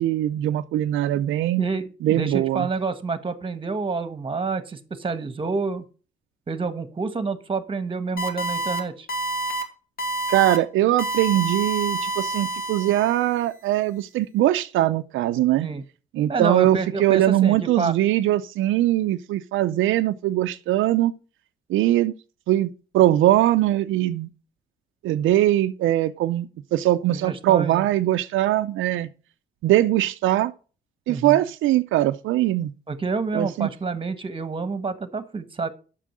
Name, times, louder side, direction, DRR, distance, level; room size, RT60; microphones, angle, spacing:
voice 1, 0.0-1.6 2.0-2.7 10.3-15.7 16.1-21.1 21.7-22.1 22.5-22.7 22.9-24.3 25.0-29.1 29.6-30.5 31.1-32.7 33.3-33.7, right 14 dB, 85° right, 0.5 m, -21 dB
voice 2, 1.6-5.8 6.5-9.1 15.6-15.8 16.3-17.9 27.1-27.9 31.1-31.4 32.9-35.7, right 4 dB, 25° right, 1.2 m, -28 dB
sound 1, 8.2-8.8 9.1-9.6 10.0-10.6 11.0-13.3, right 2 dB, 50° left, 2.3 m, -28 dB
7.5 x 6.2 x 6.1 m
cardioid pair, 90°, 20 cm